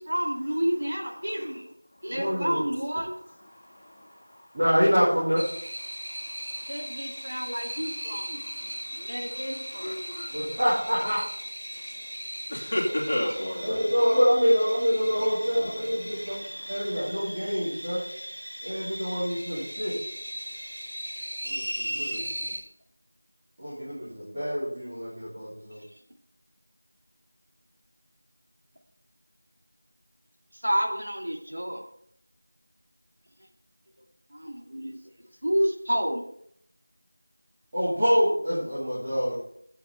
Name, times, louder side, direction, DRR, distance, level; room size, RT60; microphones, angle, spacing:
voice 1, 0.0-1.7 2.0-3.1 6.7-8.4 8.9-10.0 16.4-16.6 25.9-26.0 30.5-31.8 34.3-36.2, equal, 75° right, 0 dB, 2.5 m, -30 dB
voice 2, 2.1-2.6 4.5-5.4 10.3-11.2 13.6-16.4 16.7-18.0 18.6-20.0 21.4-22.5 23.6-25.8 37.7-39.3, equal, 20° right, -12 dB, 2.3 m, -26 dB
voice 3, 3.6-4.4 5.9-6.7 8.4-9.2 9.7-10.6 12.5-13.7 16.4-17.1, left 1 dB, 25° left, -3 dB, 2.2 m, -34 dB
sound 1, 5.4-22.6, equal, 55° right, 4.8 m, -38 dB
16.5 x 7.7 x 3.4 m, 0.70 s
figure-of-eight pair, 180°, 0 cm